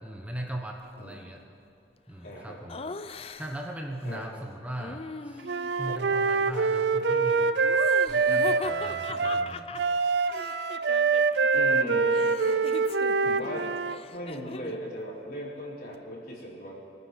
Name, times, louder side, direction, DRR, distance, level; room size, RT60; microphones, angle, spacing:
voice 1, 0.0-1.4 2.1-2.8 3.4-5.4 5.8-7.5 8.1-9.8, right 1 dB, 10° right, 1 dB, 1.1 m, -39 dB
voice 2, 2.2-2.8 4.0-4.3 5.8-6.0 11.5-12.2 13.2-13.7 14.1-16.7, equal, 50° left, -4 dB, 4.1 m, -38 dB
Laughter, 2.7-3.7 4.8-5.8 7.6-11.5 11.8-14.9, left 3 dB, 30° left, 0.5 m, -40 dB
Wind instrument woodwind instrument, 5.5-14.0, right 4 dB, 65° right, 0.4 m, -25 dB
23.0 x 9.6 x 6.2 m, 2.8 s
head